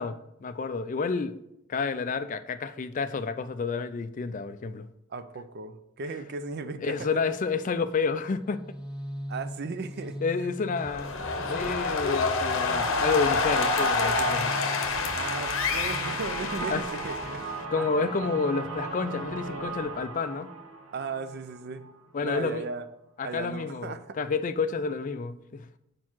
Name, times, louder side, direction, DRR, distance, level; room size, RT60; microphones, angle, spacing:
voice 1, 0.0-1.4 1.7-4.9 6.8-8.6 10.2-11.1 11.5-14.5 16.7-16.8 17.7-20.5 22.1-22.7 23.2-25.7, left 4 dB, 35° left, 0.3 m, -30 dB
voice 2, 5.1-7.1 9.3-10.5 15.1-17.4 17.8-17.9 20.9-21.9 22.2-22.9 23.2-24.2, right 4 dB, 45° right, 0.4 m, -36 dB
sound 1, 8.2-20.1, equal, 5° right, 0.7 m, -42 dB
sound 2, 10.7-17.6, left 4 dB, 60° left, 0.8 m, -28 dB
sound 3, 12.4-22.1, right 4 dB, 75° right, 0.8 m, -37 dB
4.7 x 4.5 x 6.0 m
head